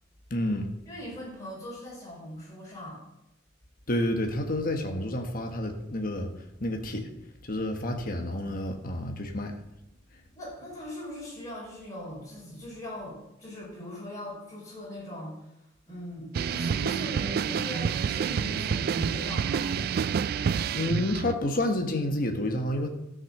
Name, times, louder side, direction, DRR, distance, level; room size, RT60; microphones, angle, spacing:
voice 1, 0.3-0.7 3.9-6.3 6.6-7.1 7.4-9.5 20.7-22.9, left 1 dB, 50° left, 4 dB, 1.4 m, -29 dB
voice 2, 0.8-3.0 10.3-15.4 15.9-19.7, equal, 20° left, -7 dB, 5.1 m, -40 dB
sound 1, 16.3-21.4, right 7 dB, 50° right, 0.3 m, -28 dB
13.5 x 6.5 x 6.6 m, 0.87 s
head